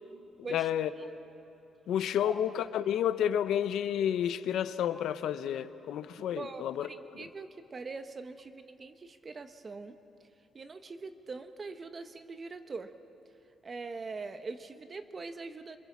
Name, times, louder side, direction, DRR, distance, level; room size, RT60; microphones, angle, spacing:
voice 1, 0.5-0.9 1.9-6.9, left 10 dB, 80° left, 12 dB, 0.9 m, -30 dB
voice 2, 6.3-10.3 10.5-13.0 13.6-15.8, right 4 dB, 35° right, 9 dB, 1.1 m, -42 dB
27.0 x 21.5 x 7.4 m, 2.9 s
cardioid pair, 90°, 0 cm